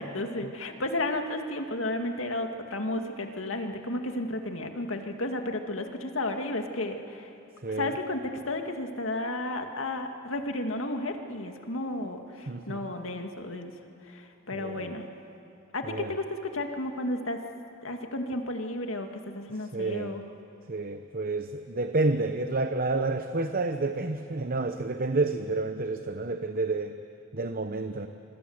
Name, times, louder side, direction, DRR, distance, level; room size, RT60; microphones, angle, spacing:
voice 1, 0.0-7.3 7.7-8.2 8.5-13.7 14.1-15.0 15.7-17.4 17.8-19.1 19.3-20.2, left 1 dB, 80° left, 4 dB, 2.3 m, -33 dB
voice 2, 7.6-7.9 12.5-12.9 14.5-14.9 15.8-16.1 19.7-20.2 20.7-27.0 27.3-28.1, right 3 dB, 45° right, 8 dB, 0.9 m, -29 dB
26.0 x 25.0 x 8.1 m, 2.6 s
head